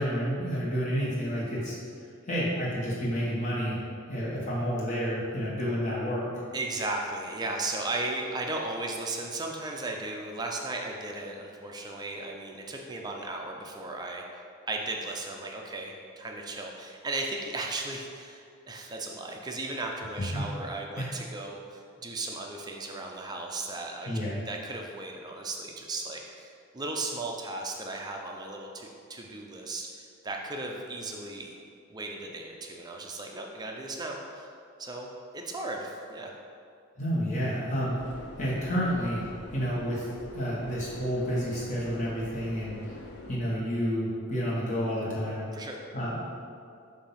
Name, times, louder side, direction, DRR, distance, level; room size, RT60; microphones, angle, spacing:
voice 1, 0.0-1.8 2.3-3.8 4.1-6.3 20.2-20.5 21.0-21.1 24.0-24.4 37.0-38.0 38.4-39.2 39.5-42.7 43.3-45.4 45.9-46.2, equal, 35° left, -6 dB, 1.2 m, -30 dB
voice 2, 6.5-14.2 14.7-24.1 24.4-31.5 31.9-34.5 34.8-35.1 35.3-36.3 45.5-45.8, right 2 dB, 20° right, 1 dB, 0.4 m, -36 dB
Subway metro underground, 37.9-43.4, left 1 dB, 55° left, 0.5 m, -45 dB
7.0 x 2.7 x 5.7 m, 2.4 s
head